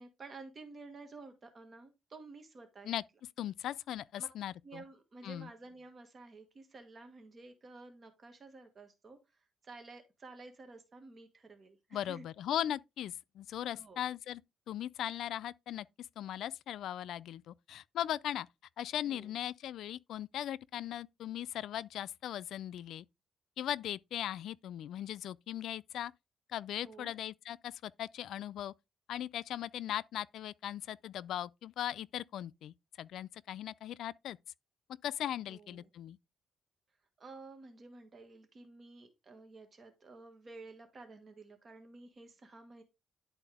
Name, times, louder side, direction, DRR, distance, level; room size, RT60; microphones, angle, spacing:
voice 1, 0.0-3.0 4.2-4.3 4.6-12.2 13.7-14.0 19.0-19.3 26.8-27.1 35.5-35.9 37.2-42.8, right 3 dB, 35° right, 1.6 m, -52 dB
voice 2, 3.4-4.8 5.2-5.5 11.9-14.4 14.7-15.9 16.2-18.5 18.8-23.1 23.6-26.1 26.5-28.7 29.1-34.4 35.0-36.2, left 11 dB, 75° left, 0.3 m, -39 dB
11.0 x 4.2 x 3.4 m
cardioid pair, 135°, 0 cm